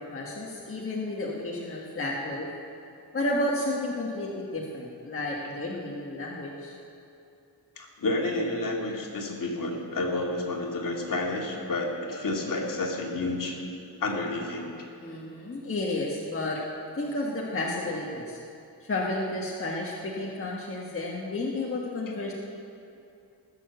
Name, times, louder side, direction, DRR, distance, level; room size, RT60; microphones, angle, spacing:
voice 1, 0.0-2.5 3.1-6.7 15.0-16.6 16.9-18.4 18.8-22.3, left 2 dB, 35° left, -4 dB, 1.6 m, -32 dB
voice 2, 7.8-13.6 14.0-14.9, left 2 dB, 55° left, -1 dB, 2.4 m, -30 dB
19.5 x 7.0 x 8.1 m, 2.6 s
wide cardioid pair, 120°, 39 cm